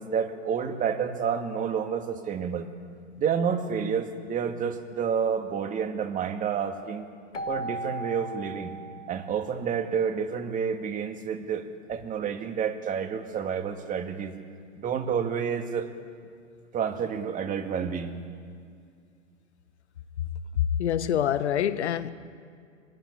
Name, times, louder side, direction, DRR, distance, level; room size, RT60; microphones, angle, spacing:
voice 1, 0.0-2.7 3.2-7.1 7.5-8.7 9.1-14.3 14.8-15.9 16.7-18.2, right 7 dB, 20° right, 2.1 m, -29 dB
Keyboard (musical), 7.3-10.0, right 1 dB, 90° left, 1.7 m, -37 dB
voice 2, 20.5-22.1, left 10 dB, 65° left, 1.5 m, -25 dB
23.5 x 17.0 x 9.9 m
hypercardioid pair, 115°, 36 cm